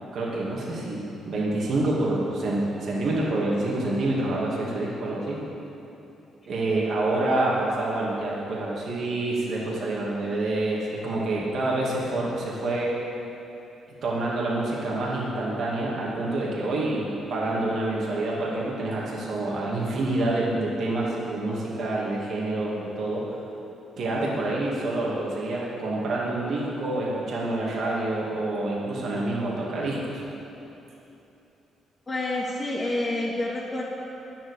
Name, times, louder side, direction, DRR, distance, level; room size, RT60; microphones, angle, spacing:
voice 1, 0.1-5.4 6.5-12.9 14.0-23.2 24.0-30.2, right 2 dB, 60° right, -4 dB, 2.2 m, -27 dB
voice 2, 32.1-33.8, left 2 dB, 25° left, -7 dB, 1.8 m, -28 dB
10.0 x 7.6 x 8.2 m, 3.0 s
cardioid pair, 90°, 0 cm